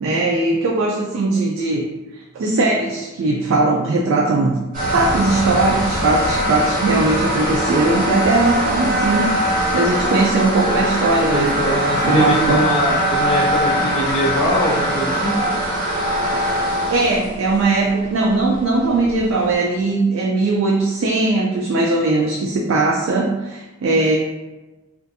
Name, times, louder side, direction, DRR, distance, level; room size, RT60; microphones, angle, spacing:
voice 1, 0.0-1.9 2.1-11.6 12.0-12.7 16.9-24.2, right 2 dB, 90° right, 0 dB, 0.3 m, -19 dB
sound 1, 4.7-19.5, equal, 45° right, 1.3 m, -21 dB
voice 2, 11.3-15.4, equal, 35° left, -6 dB, 0.4 m, -22 dB
2.4 x 2.4 x 2.6 m, 1.1 s
head